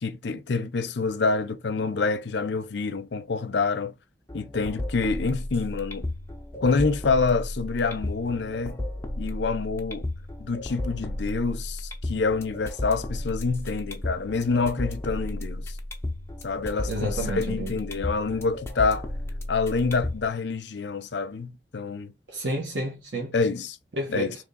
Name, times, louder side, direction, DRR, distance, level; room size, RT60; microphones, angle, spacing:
voice 1, 0.0-3.9 4.3-6.1 6.6-8.8 9.2-10.0 10.4-15.8 16.4-19.1 19.5-22.1 23.3-23.8 24.1-24.4, left 4 dB, 80° left, 0.6 m, -27 dB
sound 1, 4.3-20.3, left 1 dB, 15° left, 0.7 m, -34 dB
voice 2, 16.9-17.7 22.3-23.3 24.0-24.3, right 1 dB, 90° right, 1.2 m, -30 dB
3.5 x 3.1 x 3.9 m
head